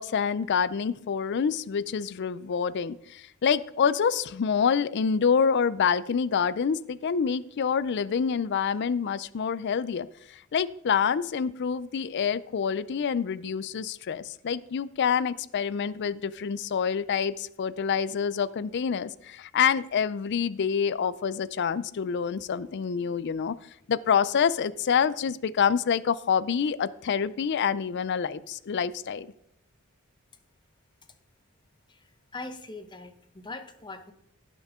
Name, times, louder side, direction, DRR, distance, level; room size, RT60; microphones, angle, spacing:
voice 1, 0.0-23.6 23.9-29.3, left 6 dB, 55° left, 17 dB, 0.4 m, -27 dB
voice 2, 32.3-34.1, left 3 dB, 20° left, 8 dB, 0.9 m, -41 dB
16.5 x 6.3 x 3.6 m, 0.77 s
head